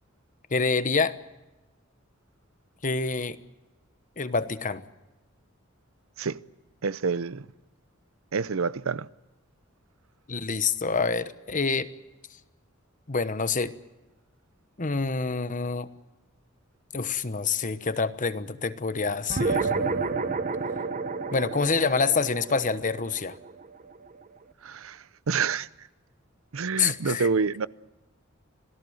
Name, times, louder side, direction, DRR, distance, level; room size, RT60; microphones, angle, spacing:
voice 1, 0.5-1.1 2.8-3.4 4.2-4.8 10.3-11.9 13.1-13.7 14.8-15.9 16.9-20.4 21.3-23.4 26.8-27.3, left 4 dB, 40° left, 1.1 m, -27 dB
voice 2, 6.8-7.5 8.3-9.1 24.6-25.9 26.5-27.7, right 5 dB, 90° right, 0.7 m, -28 dB
sound 1, 19.3-24.1, right 4 dB, 40° right, 1.0 m, -30 dB
26.5 x 17.0 x 8.0 m
head